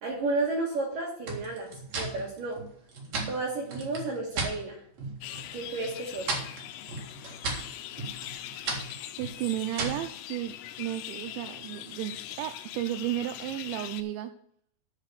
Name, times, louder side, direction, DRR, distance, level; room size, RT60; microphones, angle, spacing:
voice 1, 0.0-1.7 2.0-2.6 3.3-4.8 5.5-6.3, right 3 dB, 65° right, -1 dB, 2.2 m, -32 dB
sound 1, 1.2-4.6 5.0-5.5 5.8-10.1, right 3 dB, 50° right, 2.1 m, -35 dB
sound 2, 5.2-14.0, left 13 dB, 85° left, 3.1 m, -42 dB
voice 2, 9.2-14.3, right 14 dB, 90° right, 8 dB, 2.6 m, -33 dB
8.3 x 5.9 x 6.5 m, 0.66 s
omnidirectional pair, 5.8 m